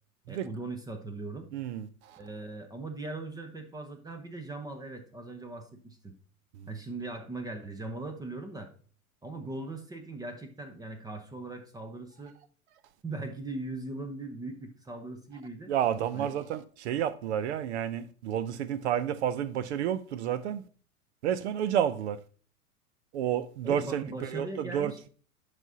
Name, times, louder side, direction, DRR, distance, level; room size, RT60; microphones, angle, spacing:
voice 1, 0.3-1.5 2.2-6.1 6.7-8.7 9.2-12.3 13.0-15.7 16.1-16.3 23.6-25.1, right 2 dB, 10° right, 0.7 m, -39 dB
voice 2, 1.5-2.2 15.7-20.6 21.2-22.2 23.1-25.1, right 9 dB, 50° right, 0.6 m, -30 dB
10.5 x 5.0 x 2.7 m
figure-of-eight pair, 100°, 44 cm